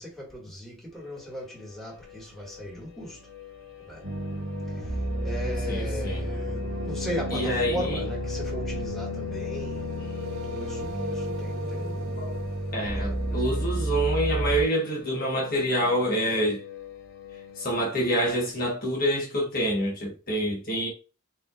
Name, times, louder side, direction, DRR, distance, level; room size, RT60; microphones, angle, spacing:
voice 1, 0.0-3.2 3.8-4.1 4.3-10.1 10.5-12.2 12.9-13.5, equal, ahead, 1.8 m, -38 dB
sound 1, 0.9-18.3, left 8 dB, 85° left, 1.0 m, -40 dB
sound 2, 4.0-14.6, right 1 dB, 80° right, 1.0 m, -31 dB
voice 2, 5.7-6.2 7.3-8.0 12.2-12.3 12.7-16.6 17.6-20.9, equal, 45° left, 1.2 m, -27 dB
7.4 x 2.8 x 2.4 m
head